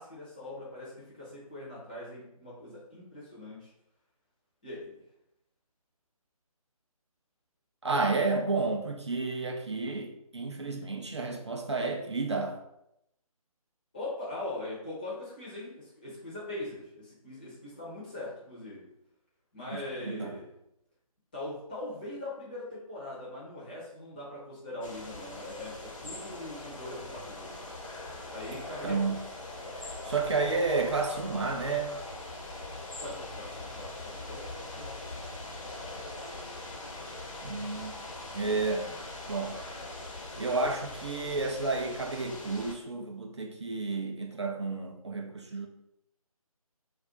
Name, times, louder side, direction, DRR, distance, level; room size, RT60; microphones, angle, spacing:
voice 1, 0.0-3.7 4.6-5.0 13.9-18.9 19.5-20.5 21.3-27.5 28.3-29.2 33.0-35.0, left 2 dB, 15° left, -7 dB, 0.6 m, -41 dB
voice 2, 7.8-12.6 19.7-20.3 28.8-29.2 29.8-32.0 37.4-38.0 38.3-38.9 39.3-39.6 40.4-45.7, right 3 dB, 50° right, 3 dB, 0.4 m, -31 dB
sound 1, 24.8-42.7, left 2 dB, 55° left, 0.7 m, -42 dB
2.4 x 2.3 x 3.8 m, 0.80 s
figure-of-eight pair, 150°, 19 cm